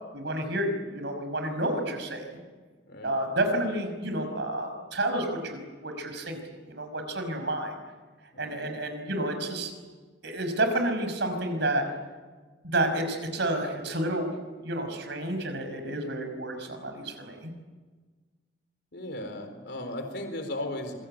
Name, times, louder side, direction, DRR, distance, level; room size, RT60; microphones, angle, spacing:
voice 1, 0.1-2.4 3.0-6.4 6.7-7.7 8.4-9.7 10.2-11.8 12.6-14.3 14.6-17.5, right 1 dB, 65° right, 7 dB, 5.4 m, -30 dB
voice 2, 2.9-3.3 8.3-8.8 18.9-21.1, left 1 dB, 60° left, 6 dB, 4.2 m, -36 dB
26.0 x 23.0 x 8.9 m, 1.4 s
head